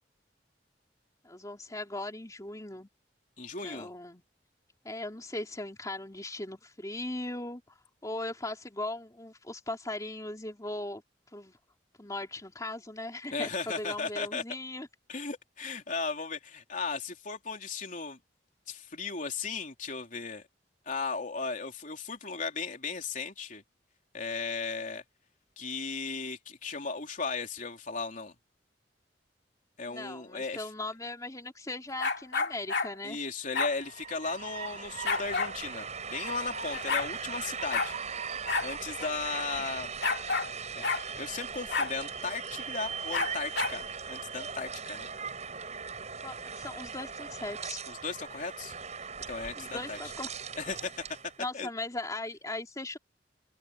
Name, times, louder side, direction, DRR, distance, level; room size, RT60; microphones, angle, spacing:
voice 1, 1.2-2.9 3.6-4.2 4.8-11.0 11.3-11.6 12.0-14.9 29.8-33.3 39.5-39.6 46.2-47.8 49.5-50.3 51.4-53.0, left 2 dB, 20° left, 3.2 m, -38 dB
voice 2, 3.4-3.9 13.3-14.4 15.1-18.2 18.7-20.5 20.9-23.6 24.1-25.0 25.6-28.3 29.8-30.7 33.0-37.9 38.6-39.9 40.7-45.1 47.9-48.7 49.3-50.0 50.6-50.9 51.5-51.7, left 4 dB, 45° left, 3.5 m, -36 dB
sound 1, 32.0-32.9 33.5-33.7 35.1-35.5 36.4-36.5 36.7-37.1 37.7-37.9 38.5-38.7 39.0-39.1 40.0-40.5 40.8-41.0 41.7-41.9 43.1-43.8, left 4 dB, 70° left, 2.6 m, -30 dB
Train, 33.5-51.3, right 6 dB, 40° right, 7.6 m, -39 dB
open air
head